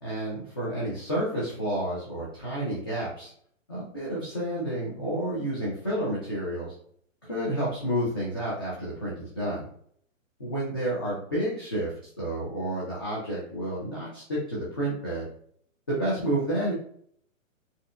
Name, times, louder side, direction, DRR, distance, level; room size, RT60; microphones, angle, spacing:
voice 1, 0.0-3.3 3.7-6.7 7.3-9.6 10.4-11.9 12.2-15.2 15.9-16.7, right 1 dB, 20° left, -8 dB, 0.4 m, -30 dB
5.1 x 2.1 x 2.4 m, 0.62 s
hypercardioid pair, 170°, 40 cm